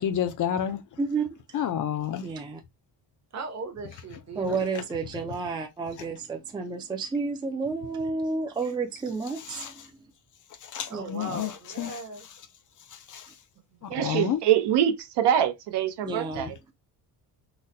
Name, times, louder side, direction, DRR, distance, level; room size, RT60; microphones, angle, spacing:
voice 1, 0.0-0.8 1.5-2.2 9.5-9.7 10.6-12.4 12.9-13.3 13.8-14.4, left 9 dB, 50° left, 0.4 m, -30 dB
voice 2, 1.0-1.4 2.2-2.6 4.3-9.7 10.9-11.0 16.0-16.5, right 4 dB, 10° right, 0.4 m, -31 dB
voice 3, 3.3-4.6 10.9-12.2, right 3 dB, 40° right, 0.9 m, -38 dB
voice 4, 13.9-16.6, right 10 dB, 75° right, 0.7 m, -24 dB
3.9 x 2.1 x 2.6 m
cardioid pair, 155°, 41 cm